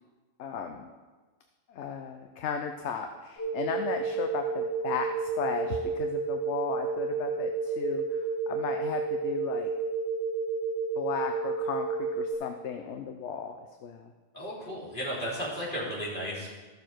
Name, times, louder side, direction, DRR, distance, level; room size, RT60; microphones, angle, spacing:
voice 1, 0.4-0.9 1.7-9.7 10.9-13.5 13.8-14.1, left 6 dB, 65° left, 5 dB, 1.0 m, -35 dB
sound 1, 3.4-12.3, right 5 dB, 20° right, 2.8 m, -31 dB
voice 2, 14.3-16.5, equal, 40° left, -8 dB, 4.0 m, -34 dB
14.5 x 6.7 x 4.5 m, 1.3 s
omnidirectional pair, 1.3 m